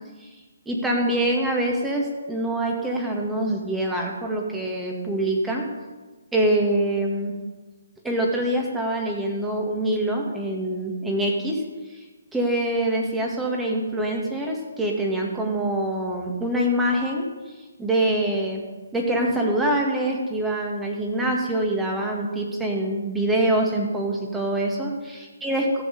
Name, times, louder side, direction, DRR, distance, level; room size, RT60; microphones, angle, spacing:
voice 1, 0.7-5.6 6.3-7.3 8.0-11.6 12.3-17.3 17.8-18.6 18.9-24.9 25.4-25.8, right 1 dB, 5° right, 0 dB, 2.1 m, -24 dB
15.5 x 6.4 x 6.9 m, 1.2 s
hypercardioid pair, 145°, 0 cm